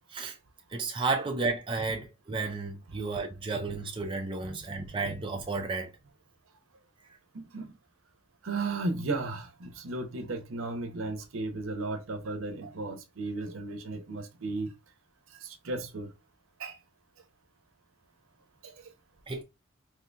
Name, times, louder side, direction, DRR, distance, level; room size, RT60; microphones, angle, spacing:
voice 1, 0.7-5.9 19.3-19.4, right 3 dB, 25° right, 0.4 m, -32 dB
voice 2, 7.3-7.8 8.4-14.7 15.3-16.1 16.6-16.8 18.6-18.9, right 2 dB, 80° right, 0.7 m, -35 dB
2.8 x 2.2 x 3.8 m
head